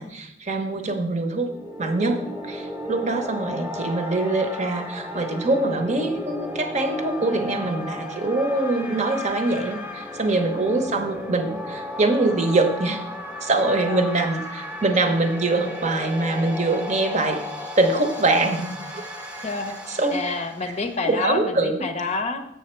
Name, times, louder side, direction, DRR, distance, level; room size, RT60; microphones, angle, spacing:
voice 1, 0.0-1.5 1.8-13.0 13.4-17.4 17.8-19.0 20.0-20.2 21.0-21.8, right 2 dB, 40° right, 5 dB, 0.9 m, -23 dB
sound 1, 1.3-21.2, left 1 dB, 5° right, 0.8 m, -35 dB
voice 2, 3.5-3.8 8.9-9.0 10.7-11.0 13.8-14.1 19.4-22.5, left 3 dB, 35° left, 6 dB, 0.7 m, -29 dB
7.0 x 6.9 x 4.4 m, 0.83 s
head